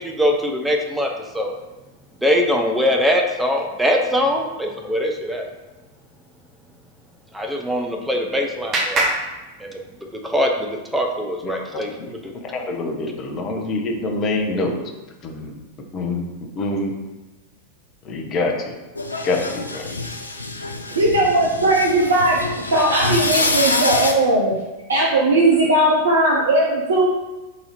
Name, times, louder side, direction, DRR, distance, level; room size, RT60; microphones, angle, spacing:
voice 1, 0.0-1.5 2.2-5.5 7.3-9.1 9.6-9.8 10.1-11.9 12.2-12.3, equal, 5° right, 1 dB, 0.5 m, -22 dB
Clapping, 7.6-10.2, right 2 dB, 30° right, 0.8 m, -27 dB
voice 2, 11.4-14.8 15.2-15.6 15.9-16.2 16.6-16.9 18.0-18.8 19.2-19.9, left 2 dB, 30° left, 2 dB, 0.7 m, -26 dB
sound 1, 19.0-24.1, left 2 dB, 80° left, 0.4 m, -25 dB
voice 3, 20.9-22.4 22.7-24.6 24.9-27.1, right 1 dB, 70° right, -3 dB, 0.6 m, -17 dB
4.0 x 2.7 x 4.1 m, 1.1 s
figure-of-eight pair, 90°, 0 cm